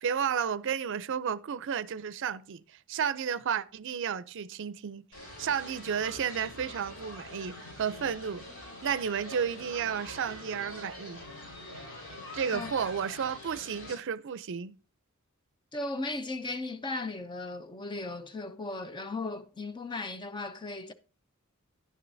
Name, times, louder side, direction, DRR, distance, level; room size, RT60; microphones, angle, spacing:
voice 1, 0.0-5.1 5.4-11.2 12.3-14.8, right 7 dB, 60° right, 0.5 m, -32 dB
sound 1, 5.1-13.9, left 1 dB, 90° left, 4.7 m, -44 dB
voice 2, 15.7-20.9, left 2 dB, 20° left, 0.4 m, -36 dB
10.5 x 10.0 x 2.6 m
head